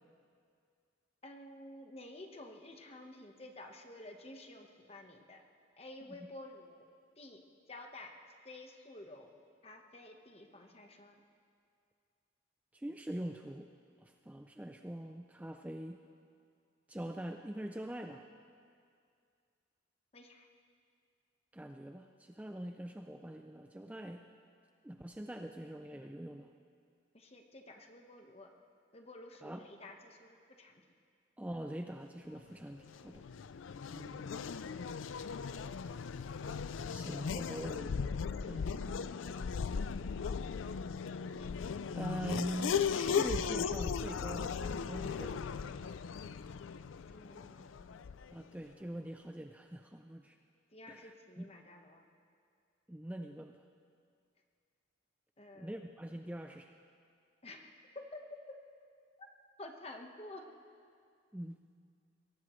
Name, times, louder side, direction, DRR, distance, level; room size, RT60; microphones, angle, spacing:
voice 1, 1.2-5.4 5.8-6.9 7.2-7.4 7.7-8.1 8.4-11.2 20.1-20.5 27.1-28.5 28.9-30.8 47.1-48.0 50.7-52.1 55.4-55.7 57.4-58.2 59.2-59.3 59.6-60.4, left 2 dB, 30° left, 3 dB, 1.2 m, -51 dB
voice 2, 12.7-13.7 14.0-16.0 16.9-18.3 21.5-24.3 24.8-26.5 29.4-29.7 31.4-33.3 33.9-34.3 36.9-38.1 38.4-39.0 42.0-45.4 48.3-50.4 50.9-51.5 52.9-53.6 55.5-56.8 61.3-61.6, right 1 dB, 10° right, 5 dB, 0.4 m, -43 dB
Race car auto racing / Accelerating revving vroom, 32.8-48.4, left 6 dB, 90° left, 0.4 m, -37 dB
22.5 x 17.5 x 3.1 m, 2.3 s
head